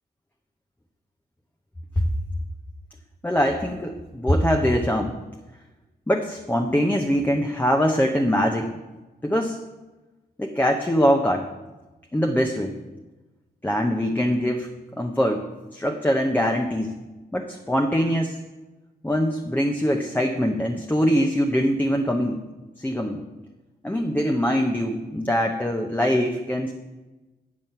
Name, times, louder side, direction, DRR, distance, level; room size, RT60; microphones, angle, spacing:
voice 1, 3.2-5.1 6.1-8.7 9.2-9.6 10.4-11.5 12.1-12.8 13.6-14.7 15.0-16.9 17.3-18.4 19.0-22.4 22.8-23.2 23.8-26.7, equal, 10° left, 2 dB, 0.7 m, -23 dB
9.0 x 6.2 x 5.6 m, 1.1 s
wide cardioid pair, 110°, 17 cm